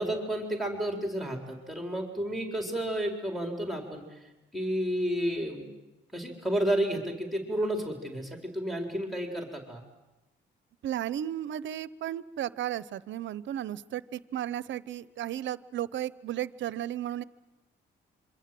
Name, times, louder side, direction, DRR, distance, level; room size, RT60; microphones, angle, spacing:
voice 1, 0.0-5.7 6.1-9.8, right 1 dB, ahead, 2 dB, 4.3 m, -31 dB
voice 2, 10.8-17.2, right 11 dB, 70° right, 17 dB, 0.9 m, -34 dB
26.5 x 24.5 x 7.8 m, 1.0 s
cardioid pair, 90°, 20 cm